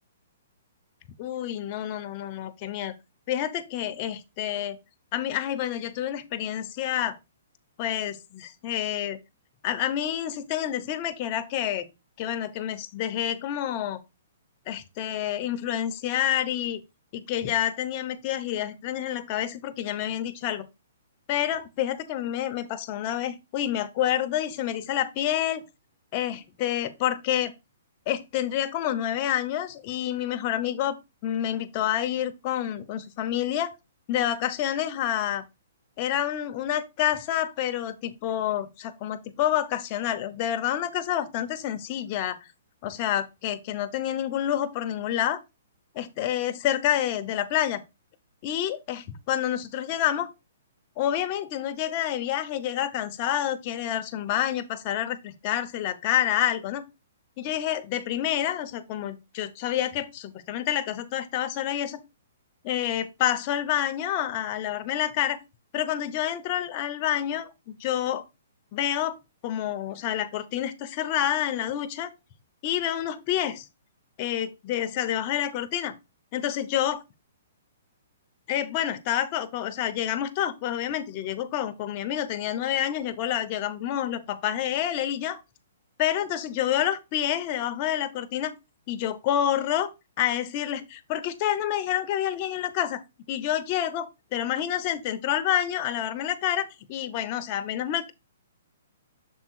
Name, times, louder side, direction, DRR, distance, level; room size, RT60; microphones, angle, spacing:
voice 1, 1.2-2.9 3.3-4.8 5.1-7.2 7.8-9.2 9.6-11.8 12.2-14.0 14.7-16.8 17.1-20.7 21.3-25.6 26.1-27.5 28.1-31.0 31.2-33.7 34.1-35.4 36.0-42.4 42.8-45.4 45.9-47.8 48.4-50.3 51.0-56.8 57.4-62.0 62.6-65.4 65.7-68.2 68.7-69.2 69.4-72.1 72.6-73.6 74.2-75.9 76.3-77.0 78.5-85.4 86.0-88.5 88.9-89.9 90.2-93.0 93.3-98.1, left 11 dB, 35° left, 0.9 m, -28 dB
7.0 x 3.7 x 4.6 m
hypercardioid pair, 150°, 0 cm